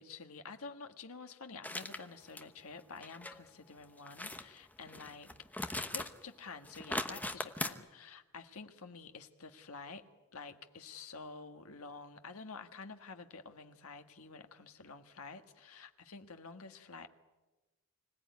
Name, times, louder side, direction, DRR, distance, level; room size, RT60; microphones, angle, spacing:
voice 1, 0.0-5.3 5.8-10.0 10.3-17.1, left 4 dB, 70° left, 7 dB, 1.6 m, -49 dB
sound 1, 1.6-2.0 2.4-2.5 3.0-3.4 4.1-4.4 4.8-6.2 6.5-7.7, left 2 dB, 5° left, 1.0 m, -39 dB
25.5 x 17.0 x 9.6 m, 1.2 s
head